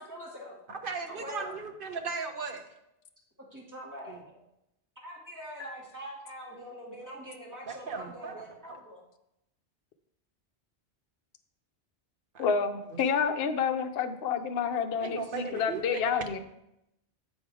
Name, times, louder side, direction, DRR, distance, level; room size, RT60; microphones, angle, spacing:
voice 1, 0.0-0.6 1.1-1.6 3.5-4.4 5.0-9.0 15.3-15.7, equal, 15° right, -4 dB, 2.1 m, -44 dB
voice 2, 0.7-2.6 4.1-4.2 7.7-8.8 12.3-12.5 12.9-13.0 15.0-16.2, right 5 dB, 50° right, 5 dB, 1.0 m, -37 dB
voice 3, 12.4-16.4, left 6 dB, 65° left, 7 dB, 0.8 m, -29 dB
7.2 x 5.3 x 4.7 m, 0.83 s
omnidirectional pair, 1.2 m